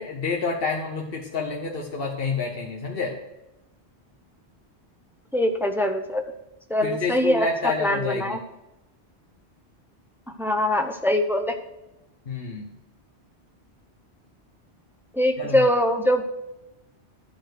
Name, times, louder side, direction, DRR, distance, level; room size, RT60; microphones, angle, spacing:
voice 1, 0.0-3.1 6.8-8.4 12.3-12.7 15.4-15.6, left 4 dB, 60° left, 0 dB, 1.2 m, -28 dB
voice 2, 5.3-6.2 6.7-8.4 10.4-11.5 15.1-16.2, left 1 dB, 5° right, 5 dB, 0.6 m, -23 dB
12.0 x 4.3 x 6.5 m, 0.94 s
omnidirectional pair, 1.1 m